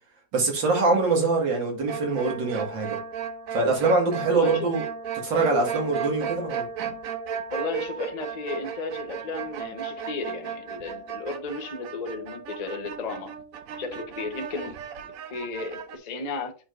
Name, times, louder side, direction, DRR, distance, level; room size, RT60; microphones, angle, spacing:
voice 1, 0.3-3.0 3.5-4.8 5.2-6.7, right 3 dB, 65° right, 2.5 m, -24 dB
sound 1, 1.9-16.0, right 7 dB, 90° right, 0.7 m, -35 dB
voice 2, 4.3-4.7 6.2-6.4 7.5-13.3 13.8-14.8 15.3-16.6, left 4 dB, 65° left, 0.4 m, -34 dB
8.7 x 4.8 x 2.5 m
omnidirectional pair, 2.2 m